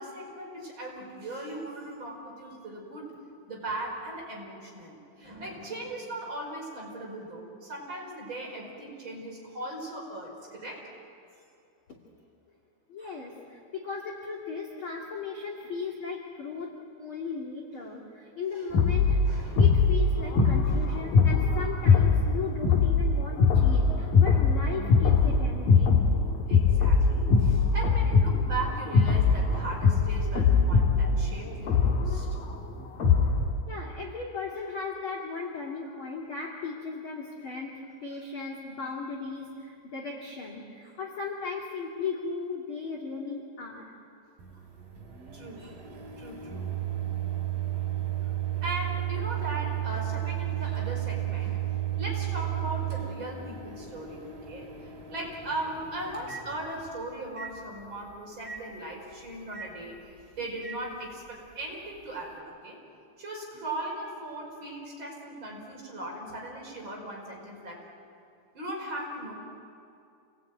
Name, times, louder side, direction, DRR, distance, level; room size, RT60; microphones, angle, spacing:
voice 1, 0.0-3.1 3.5-10.8 13.0-13.2 19.3-19.6 20.7-21.0 26.5-32.3 35.8-36.0 44.5-44.6 45.3-45.8 46.2-46.7 48.6-62.8 63.2-67.8 68.5-69.3, right 1 dB, 25° right, -2 dB, 5.2 m, -38 dB
voice 2, 12.9-16.7 17.0-19.2 19.6-26.0 33.7-43.9, left 4 dB, 40° left, -1 dB, 2.1 m, -37 dB
sound 1, 18.7-33.5, left 4 dB, 55° left, 3.1 m, -22 dB
Microwave oven, 44.4-56.9 57.4-57.5 58.4-58.6 59.5-59.7 60.6-60.8, right 12 dB, 50° right, 4.4 m, -33 dB
28.5 x 20.0 x 9.3 m, 2.5 s
omnidirectional pair, 5.5 m